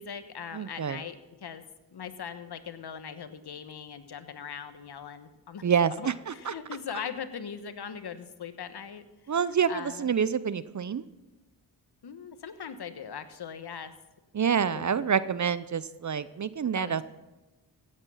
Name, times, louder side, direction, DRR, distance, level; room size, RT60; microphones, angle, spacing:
voice 1, 0.0-1.6 1.9-5.7 6.0-9.3 9.7-10.2 12.0-13.9 14.6-15.3 16.8-17.0, left 7 dB, 55° left, 11 dB, 1.3 m, -40 dB
voice 2, 0.5-1.0 5.6-6.5 9.3-11.0 14.3-17.0, right 7 dB, 40° right, 16 dB, 0.7 m, -27 dB
15.5 x 8.8 x 5.6 m, 1.1 s
supercardioid pair, 45°, 46 cm